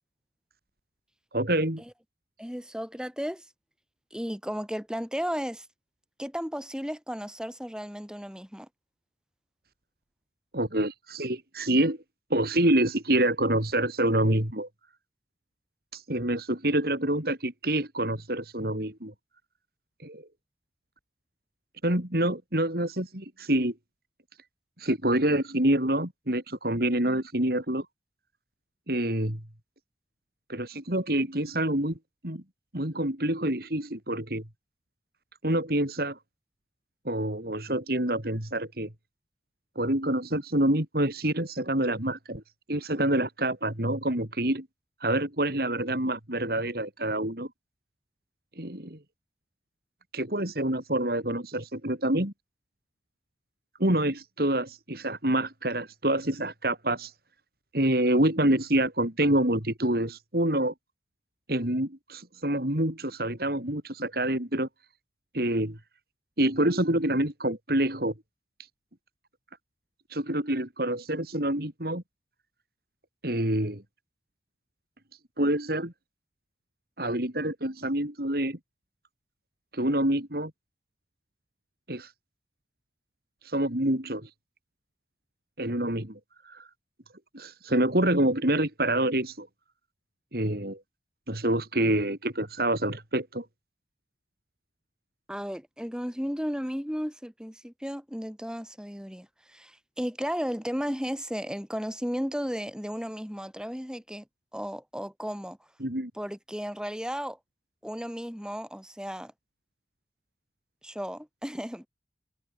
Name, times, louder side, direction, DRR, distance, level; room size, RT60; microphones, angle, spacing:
voice 1, 1.3-1.8 10.5-12.0 12.3-14.7 15.9-19.1 20.0-20.3 21.8-23.7 24.8-27.9 28.9-29.4 30.5-32.0 32.2-32.4 32.7-34.4 35.4-36.2 37.1-38.9 39.8-42.4 42.7-44.7 45.0-47.5 48.6-49.0 50.1-52.3 53.8-57.1 57.7-60.7 61.5-64.7 65.3-65.8 66.4-68.1 70.1-72.0 73.2-73.8 75.4-75.9 77.0-78.6 79.7-80.5 81.9-82.1 83.4-84.3 85.6-86.2 86.5-86.7 87.3-89.5 90.3-90.8 91.3-93.5 105.8-106.1, right 1 dB, 55° right, 3.9 m, -27 dB
voice 2, 2.4-3.5 4.1-5.7 6.2-8.7 95.3-104.2 104.5-105.6 106.2-107.4 107.8-109.3 110.8-111.9, equal, 5° right, 7.1 m, -34 dB
head